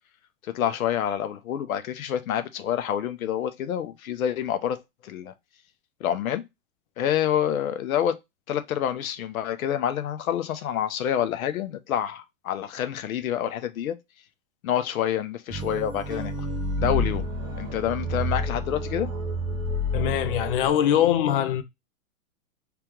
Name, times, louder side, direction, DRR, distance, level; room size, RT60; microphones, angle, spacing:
voice 1, 0.4-4.8 5.0-5.3 6.0-6.4 7.0-8.2 8.5-14.0 14.6-16.5 16.8-17.3 17.6-19.1, left 10 dB, 80° left, 0.9 m, -27 dB
sound 1, 15.5-20.7, equal, 10° right, 0.5 m, -29 dB
voice 2, 19.9-21.6, left 10 dB, 40° left, 0.6 m, -22 dB
3.5 x 3.4 x 3.0 m
hypercardioid pair, 145°, 41 cm